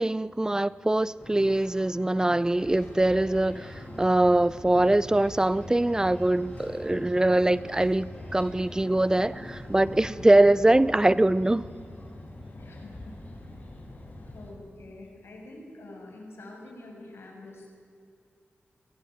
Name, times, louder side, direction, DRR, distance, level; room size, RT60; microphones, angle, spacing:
voice 1, 0.0-11.7, right 1 dB, 15° right, 0.6 m, -23 dB
sound 1, 1.2-12.4, equal, 15° left, 8.0 m, -48 dB
sound 2, 2.6-14.5, left 1 dB, 45° left, 6.1 m, -44 dB
voice 2, 12.6-13.6 14.2-17.7, left 2 dB, 75° left, 6.6 m, -46 dB
23.5 x 17.0 x 9.1 m
cardioid pair, 70°, 4 cm